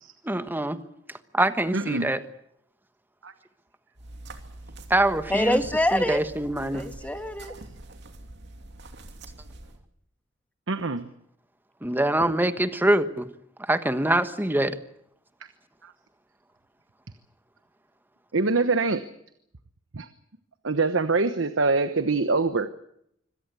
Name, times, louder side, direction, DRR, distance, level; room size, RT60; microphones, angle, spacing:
voice 1, 0.3-0.8 1.3-2.2 4.9-5.6 5.9-6.8 11.8-13.3 13.7-14.8, right 1 dB, 10° right, 10 dB, 1.3 m, -24 dB
voice 2, 1.7-2.1 3.2-3.3 7.4-7.6 10.7-11.1 12.2-12.3 15.8-15.9 18.3-19.0 19.9-20.1 20.6-22.7, right 3 dB, 80° right, 11 dB, 1.1 m, -24 dB
sound 1, 4.0-9.8, right 2 dB, 60° right, 2.7 m, -44 dB
voice 3, 5.3-6.2 6.7-7.5, left 1 dB, 10° left, 8 dB, 1.8 m, -25 dB
25.5 x 17.5 x 8.3 m, 0.73 s
head